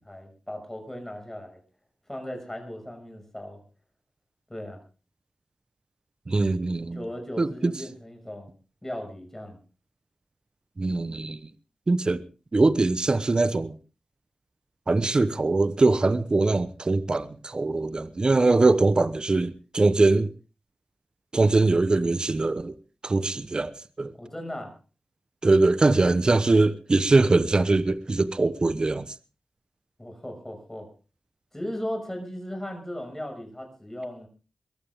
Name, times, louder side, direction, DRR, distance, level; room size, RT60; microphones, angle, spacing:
voice 1, 0.0-1.6 2.1-3.6 4.5-4.8 6.9-8.5 8.8-9.6 24.2-24.7 30.0-30.9 31.5-34.3, left 1 dB, 15° left, 6.3 m, -37 dB
voice 2, 6.3-7.0 7.4-7.7 10.8-11.4 11.9-12.2 12.5-13.7 14.9-20.3 21.3-22.7 23.0-23.7 24.0-24.1 25.4-29.0, right 3 dB, 45° right, 1.0 m, -22 dB
22.0 x 14.5 x 3.7 m
cardioid pair, 50°, 2 cm